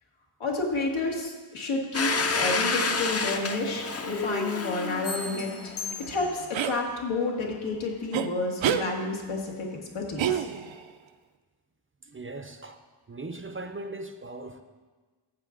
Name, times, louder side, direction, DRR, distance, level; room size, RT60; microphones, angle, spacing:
voice 1, 0.4-5.7 6.1-9.7 9.9-10.4, left 3 dB, 90° left, 0 dB, 1.9 m, -30 dB
Domestic sounds home sounds, 1.9-6.6, left 3 dB, 30° left, 0.6 m, -30 dB
sound 1, 5.0-6.7, left 4 dB, 55° left, 1.0 m, -38 dB
sound 2, 6.5-6.8 8.1-8.3 8.6-8.9 10.2-10.8, right 9 dB, 75° right, 0.6 m, -27 dB
voice 2, 12.0-12.8 13.1-14.6, right 2 dB, 25° right, 7 dB, 0.5 m, -39 dB
14.0 x 7.4 x 3.8 m, 1.4 s
wide cardioid pair, 160°, 47 cm